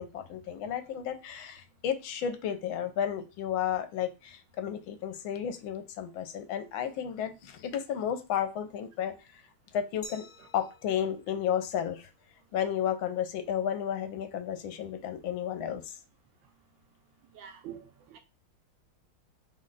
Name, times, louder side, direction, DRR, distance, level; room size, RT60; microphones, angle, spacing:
voice 1, 0.0-9.1 9.7-10.3 10.5-12.0 12.5-15.9, left 9 dB, 75° left, 1.4 m, -32 dB
Glass, 10.0-12.7, left 1 dB, 50° left, 1.5 m, -52 dB
voice 2, 17.3-18.2, right 9 dB, 75° right, 1.2 m, -46 dB
3.8 x 3.2 x 3.8 m
omnidirectional pair, 2.3 m